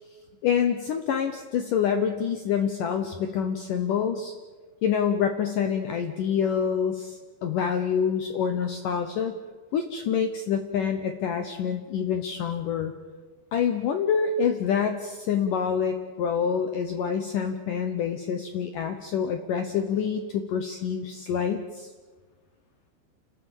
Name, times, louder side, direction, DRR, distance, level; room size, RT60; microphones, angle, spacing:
voice 1, 0.4-4.3 4.8-9.4 9.7-12.9 13.5-21.9, left 7 dB, 80° left, 6 dB, 1.9 m, -26 dB
29.0 x 13.5 x 9.0 m, 1.4 s
omnidirectional pair, 5.4 m